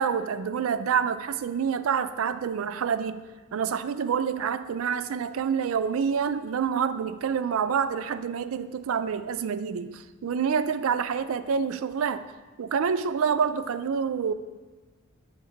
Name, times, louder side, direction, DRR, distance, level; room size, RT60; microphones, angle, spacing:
voice 1, 0.0-12.3 12.6-14.3, right 6 dB, 70° right, 11 dB, 0.4 m, -27 dB
8.6 x 3.5 x 5.7 m, 1.3 s
head